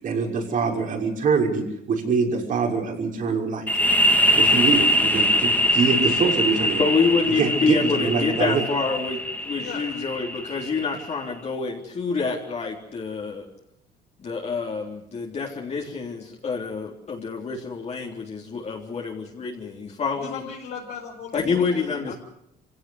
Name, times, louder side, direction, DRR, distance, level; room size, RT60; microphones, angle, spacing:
voice 1, 0.0-3.7 4.3-6.8 7.4-8.6, right 5 dB, 50° right, 1 dB, 6.1 m, -24 dB
sound 1, 3.7-11.1, equal, 10° left, 3.3 m, -22 dB
voice 2, 6.8-13.5 14.2-20.4 21.3-22.1, left 5 dB, 40° left, -1 dB, 3.7 m, -27 dB
voice 3, 20.2-22.2, left 7 dB, 75° left, -4 dB, 5.5 m, -38 dB
25.5 x 17.0 x 8.0 m, 0.79 s
cardioid pair, 110°, 17 cm